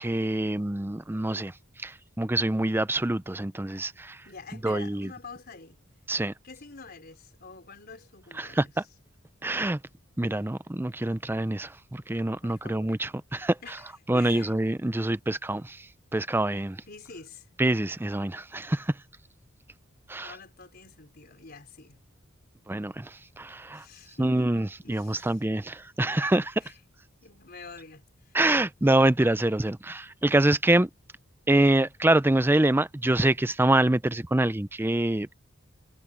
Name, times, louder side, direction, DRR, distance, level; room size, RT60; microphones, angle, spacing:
voice 1, 0.0-4.2 4.6-5.1 6.1-6.3 8.4-8.7 9.4-9.8 10.2-13.6 14.1-16.8 17.6-19.0 20.1-20.3 22.7-23.8 24.2-26.6 28.3-30.9 31.5-35.3, right 1 dB, 10° right, 0.5 m, -25 dB
voice 2, 4.2-5.8 6.4-8.7 12.4-13.0 13.6-14.9 16.9-17.5 20.2-22.0 23.7-25.4 26.6-26.7 27.2-28.4, left 4 dB, 50° left, 4.0 m, -47 dB
head